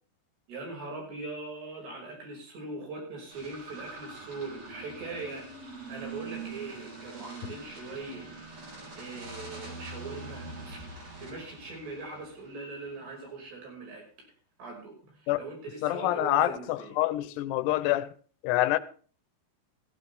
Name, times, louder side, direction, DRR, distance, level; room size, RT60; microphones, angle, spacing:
voice 1, 0.5-5.5 5.9-8.2 9.0-10.8 11.2-14.0 14.6-16.9, right 3 dB, 85° right, 7.7 m, -41 dB
sound 1, 3.3-12.8, right 3 dB, 40° right, 4.7 m, -44 dB
voice 2, 15.8-18.1 18.4-18.8, left 14 dB, 90° left, 2.9 m, -26 dB
15.5 x 15.0 x 3.5 m
omnidirectional pair, 4.7 m